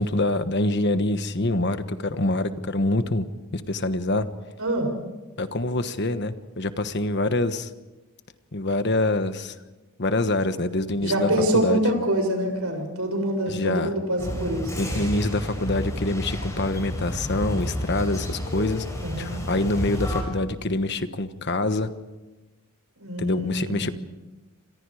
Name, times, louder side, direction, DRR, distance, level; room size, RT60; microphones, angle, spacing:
voice 1, 0.0-3.3 3.5-4.3 5.4-7.7 8.5-9.5 10.0-11.8 13.5-13.9 14.7-18.9 19.2-21.9 23.2-23.9, left 2 dB, 50° left, 10 dB, 1.3 m, -25 dB
voice 2, 4.6-4.9 11.0-15.0 19.0-19.4 23.0-23.8, right 1 dB, 85° right, 4 dB, 7.1 m, -25 dB
sound 1, 14.2-20.2, equal, 15° left, 6.3 m, -31 dB
28.5 x 26.0 x 5.0 m, 1.1 s
head